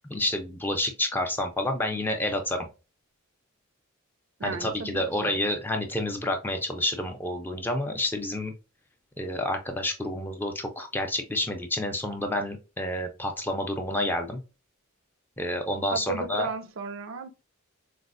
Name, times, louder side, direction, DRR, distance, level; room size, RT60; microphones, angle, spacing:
voice 1, 0.1-2.7 4.4-8.5 9.2-14.4 15.4-16.5, left 1 dB, 10° left, 0.4 m, -29 dB
voice 2, 4.4-5.4 15.9-17.3, right 4 dB, 65° right, 0.4 m, -34 dB
4.0 x 2.0 x 2.5 m
head